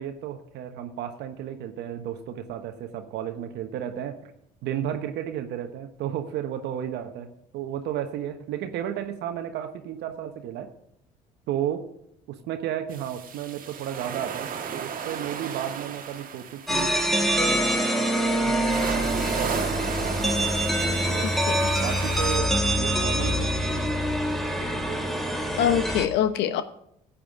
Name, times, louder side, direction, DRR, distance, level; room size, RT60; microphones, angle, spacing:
voice 1, 0.0-4.3 4.6-10.7 11.5-11.9 12.3-16.9 17.2-17.6 18.2-18.8 19.2-20.4 20.8-23.8 24.7-25.1, right 10 dB, 65° right, 7 dB, 1.2 m, -33 dB
sound 1, 12.9-22.4, right 7 dB, 45° right, 1.5 m, -35 dB
sound 2, 16.7-26.1, equal, ahead, 2.1 m, -25 dB
voice 2, 25.6-26.6, left 10 dB, 70° left, 12 dB, 1.0 m, -24 dB
15.0 x 8.7 x 3.6 m, 0.73 s
hypercardioid pair, 65°, 19 cm